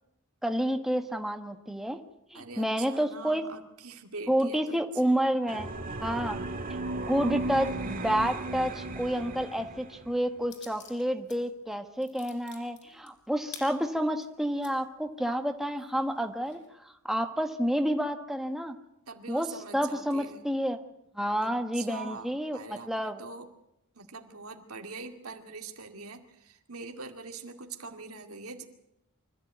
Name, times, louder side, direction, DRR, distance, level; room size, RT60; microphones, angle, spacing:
voice 1, 0.4-2.0 2.3-3.4 4.3-5.7 6.0-6.4 7.1-18.7 19.3-20.8 21.1-22.6 22.9-23.2, equal, ahead, 6 dB, 1.2 m, -29 dB
voice 2, 2.3-5.3 6.0-6.5 19.1-20.5 21.7-23.5 23.9-28.7, right 4 dB, 85° right, 4 dB, 2.3 m, -43 dB
sound 1, 5.5-10.1, right 2 dB, 40° right, 1.8 m, -35 dB
sound 2, 10.5-11.4 11.7-14.7 15.3-15.4 15.8-16.7, left 7 dB, 55° left, 5.5 m, -48 dB
25.0 x 14.5 x 9.3 m, 0.84 s
head